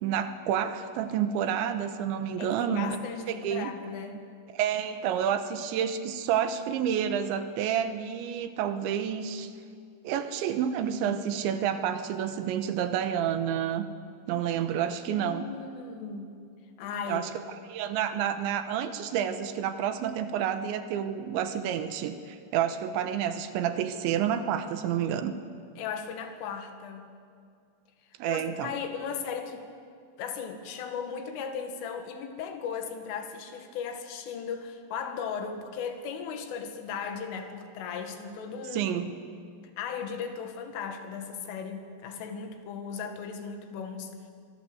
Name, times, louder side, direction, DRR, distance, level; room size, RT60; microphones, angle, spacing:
voice 1, 0.0-3.0 3.3-3.7 4.5-9.5 10.0-13.9 14.3-15.5 17.1-17.3 17.7-25.3 28.2-28.7 38.7-39.1, right 9 dB, 75° right, 9 dB, 3.2 m, -29 dB
voice 2, 2.4-4.3 15.1-16.4 16.8-17.3 25.8-27.1 28.2-29.7 30.2-38.9 39.8-44.1, left 6 dB, 85° left, 6 dB, 4.4 m, -37 dB
24.5 x 23.0 x 7.9 m, 2.3 s
omnidirectional pair, 5.6 m